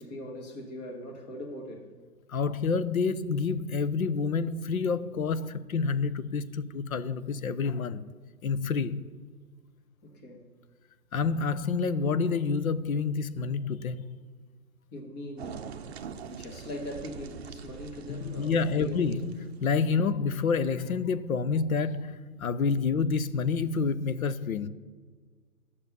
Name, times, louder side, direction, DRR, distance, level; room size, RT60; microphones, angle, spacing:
voice 1, 0.0-1.9 10.0-10.5 13.9-14.0 14.9-15.9 16.3-19.0, left 1 dB, 25° left, 2.2 m, -41 dB
voice 2, 2.3-8.0 8.4-9.1 11.1-14.1 18.1-24.7, left 5 dB, 65° left, 0.9 m, -28 dB
sound 1, 15.4-19.7, right 7 dB, 45° right, 0.7 m, -43 dB
12.5 x 7.0 x 6.9 m
hypercardioid pair, 155°, 44 cm